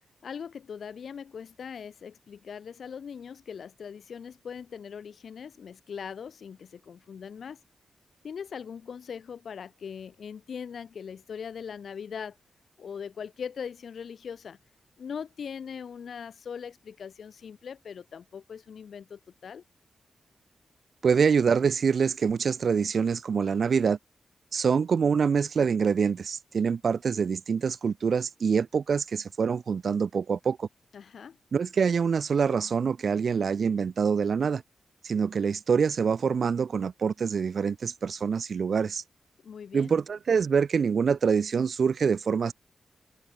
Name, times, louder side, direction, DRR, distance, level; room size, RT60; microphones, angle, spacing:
voice 1, 0.2-7.6 8.2-12.4 12.8-14.6 15.0-19.6 30.9-31.4 39.4-39.9, left 7 dB, 75° left, 5.3 m, -40 dB
voice 2, 21.0-24.0 24.5-30.7 31.5-34.6 35.0-39.0 39.7-42.5, right 6 dB, 65° right, 0.9 m, -25 dB
open air
cardioid pair, 65°, 0 cm